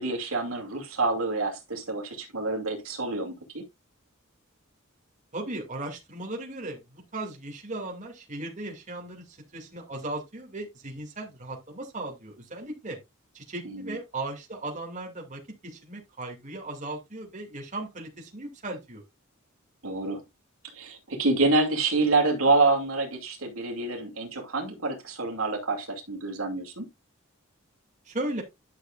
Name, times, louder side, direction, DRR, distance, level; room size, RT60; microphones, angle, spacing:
voice 1, 0.0-3.6 13.7-14.0 19.8-20.2 20.7-26.9, right 3 dB, 85° right, 2.5 m, -27 dB
voice 2, 5.3-13.0 13.3-19.0 28.1-28.4, right 2 dB, 35° right, 2.5 m, -37 dB
11.5 x 6.6 x 2.5 m
head